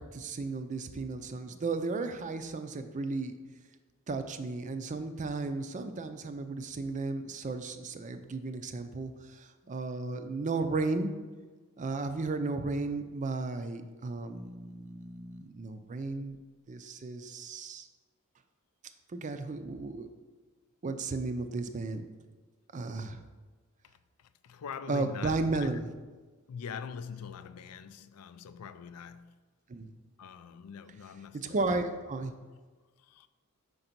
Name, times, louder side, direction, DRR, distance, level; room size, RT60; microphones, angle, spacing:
voice 1, 0.0-3.3 4.1-11.1 11.8-16.4 16.7-17.9 19.1-20.1 20.8-22.1 22.7-23.2 24.9-25.9 29.7-29.9 31.3-32.3, right 3 dB, 35° right, 0.4 m, -34 dB
voice 2, 24.2-25.8 26.5-29.3 30.2-31.8 33.0-33.3, left 6 dB, 85° left, 0.4 m, -43 dB
5.3 x 3.9 x 5.8 m
head